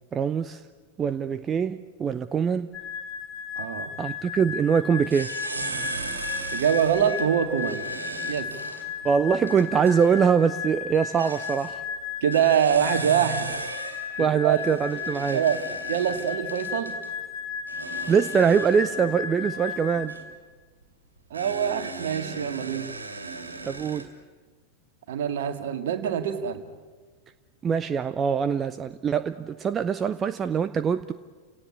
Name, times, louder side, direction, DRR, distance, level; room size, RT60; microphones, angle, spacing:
voice 1, 0.1-0.6 1.0-2.7 4.0-5.3 9.0-11.8 14.2-15.4 18.1-20.2 23.6-24.1 27.6-31.1, right 6 dB, 20° right, 12 dB, 0.7 m, -23 dB
sound 1, 2.7-20.1, left 7 dB, 20° left, 6.7 m, -35 dB
voice 2, 3.6-3.9 6.5-7.9 8.3-8.5 12.2-13.5 14.4-14.6 15.3-15.6 15.9-17.0 21.3-22.9 25.1-26.6, right 9 dB, 60° right, 8 dB, 2.0 m, -24 dB
sound 2, 5.0-10.2 10.9-11.8 12.3-17.1 17.7-20.3 21.3-24.1, right 3 dB, 80° right, 2.7 m, -37 dB
30.0 x 18.0 x 8.5 m, 1.4 s
figure-of-eight pair, 90°, 0 cm